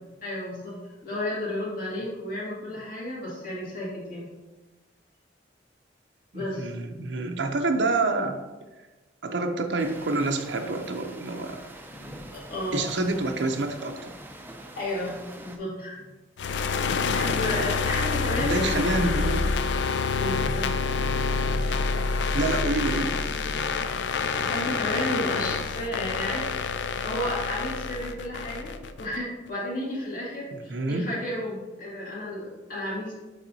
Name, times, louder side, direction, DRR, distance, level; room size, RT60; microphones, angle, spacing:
voice 1, 0.2-0.8 1.0-4.3 6.3-6.8 11.9-13.0 14.8-16.1 17.1-18.7 19.1-19.4 20.2-20.8 24.3-26.6 27.0-33.1, left 1 dB, 50° left, -5 dB, 2.0 m, -33 dB
voice 2, 6.3-8.4 9.2-11.6 12.7-14.1 18.4-19.6 22.3-23.2 30.5-31.1, right 2 dB, 80° right, 5 dB, 0.6 m, -27 dB
sound 1, 9.8-15.6, right 1 dB, 10° right, 0.4 m, -44 dB
sound 2, 16.4-29.2, left 4 dB, 75° left, 0.4 m, -27 dB
7.2 x 4.8 x 2.7 m, 1.2 s
head